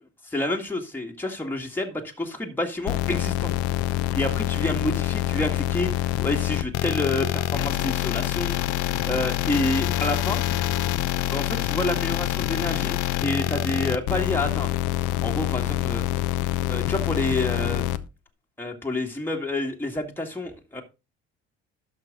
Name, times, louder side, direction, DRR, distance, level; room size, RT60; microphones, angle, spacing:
voice 1, 0.3-3.5 4.1-8.8 9.0-10.4 11.3-14.7 15.2-16.0 16.7-17.9 18.6-20.8, left 2 dB, 5° left, 1 dB, 2.0 m, -29 dB
sound 1, 2.9-18.0, left 14 dB, 60° left, 0.8 m, -26 dB
12.0 x 5.7 x 3.7 m, 0.27 s
hypercardioid pair, 60°, 33 cm